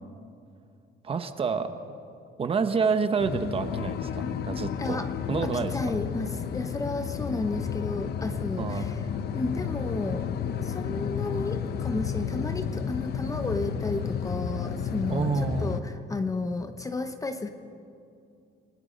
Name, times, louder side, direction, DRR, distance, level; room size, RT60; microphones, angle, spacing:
voice 1, 1.0-1.7 2.4-5.0 5.3-5.7 8.6-8.9 15.1-15.7, right 5 dB, 30° right, 9 dB, 1.1 m, -28 dB
sound 1, 3.2-15.8, left 7 dB, 60° left, 1.0 m, -32 dB
voice 2, 4.8-5.1 5.4-9.0 9.3-10.3 10.6-17.5, left 3 dB, 20° left, 9 dB, 0.8 m, -32 dB
28.5 x 19.5 x 5.2 m, 2.5 s
cardioid pair, 160°, 19 cm